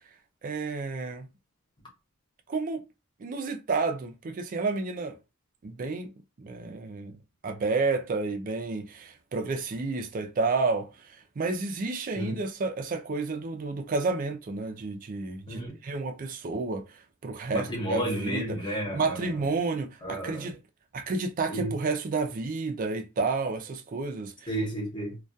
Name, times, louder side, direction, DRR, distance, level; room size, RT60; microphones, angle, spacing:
voice 1, 0.4-1.3 2.5-2.8 3.2-5.2 5.6-6.1 6.4-7.2 7.4-18.6 18.9-20.6 20.9-24.3, right 3 dB, 40° right, 0.3 m, -30 dB
voice 2, 15.5-15.8 17.5-19.5 20.0-20.5 21.5-21.8 24.5-25.2, right 1 dB, 20° left, 0.8 m, -32 dB
2.2 x 2.2 x 2.6 m
head